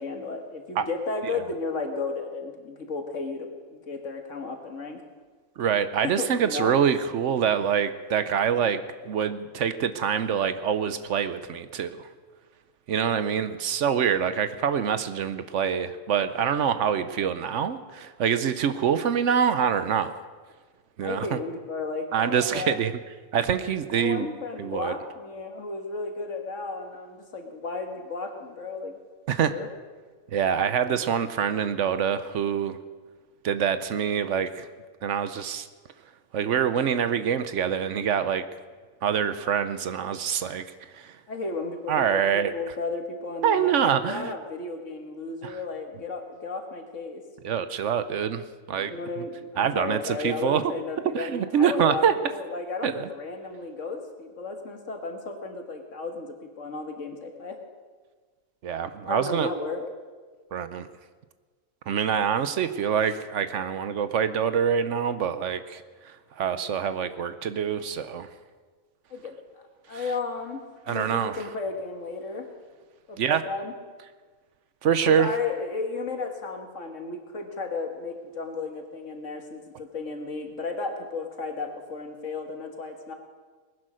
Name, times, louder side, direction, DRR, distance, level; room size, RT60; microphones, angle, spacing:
voice 1, 0.0-5.0 6.0-6.7 21.0-22.8 23.9-29.0 29.5-29.7 30.8-31.0 41.3-47.2 48.8-57.6 59.1-59.8 69.1-69.3 69.9-72.5 73.1-73.7 75.0-83.1, left 3 dB, 65° left, 4 dB, 2.0 m, -34 dB
voice 2, 5.6-12.1 12.9-20.1 21.0-21.4 22.1-22.9 23.3-24.3 24.6-24.9 29.3-29.5 30.3-32.8 33.4-34.7 35.0-35.7 36.3-38.4 39.0-40.6 40.9-41.2 41.9-42.5 43.4-44.3 45.4-45.6 47.4-48.9 49.6-50.6 51.1-52.1 52.8-53.1 58.6-59.5 60.5-60.9 61.9-68.3 69.9-70.0 70.9-71.4 73.2-73.4 74.8-75.3, right 8 dB, 65° right, 12 dB, 1.0 m, -25 dB
19.5 x 11.0 x 6.3 m, 1.4 s
omnidirectional pair, 1.4 m